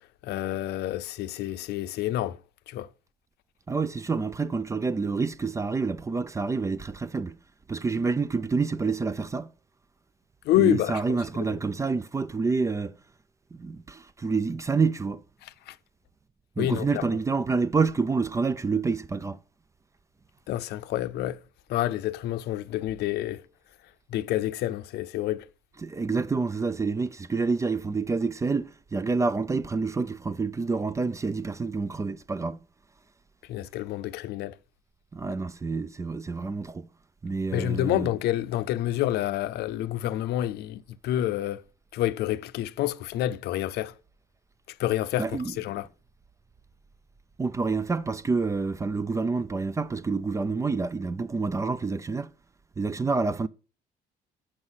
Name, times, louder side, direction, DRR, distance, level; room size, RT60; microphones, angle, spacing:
voice 1, 0.2-2.4 2.7-2.9 10.4-11.2 15.4-15.8 16.6-17.2 20.5-21.4 21.7-23.4 24.1-25.5 33.5-34.6 37.5-41.6 41.9-43.9 44.7-45.9, left 13 dB, 75° left, 0.6 m, -28 dB
voice 2, 3.7-7.4 7.7-9.5 10.6-13.0 13.5-15.2 16.6-19.4 25.8-32.6 35.1-36.9 37.2-38.1 45.2-45.5 47.4-52.3 52.8-53.5, right 4 dB, 20° right, 0.4 m, -28 dB
7.9 x 6.4 x 5.7 m
cardioid pair, 110°, 17 cm